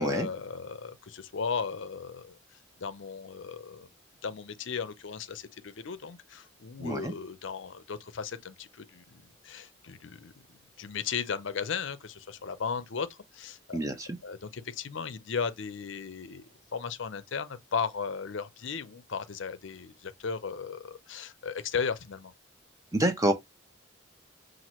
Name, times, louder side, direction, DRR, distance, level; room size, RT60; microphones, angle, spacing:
voice 1, 0.0-2.4 2.8-3.9 4.2-10.3 10.8-13.8 14.2-22.3, left 6 dB, 65° left, 0.6 m, -36 dB
voice 2, 6.8-7.1 13.7-14.2 22.9-23.3, right 1 dB, 15° right, 0.7 m, -27 dB
5.8 x 2.5 x 3.0 m
head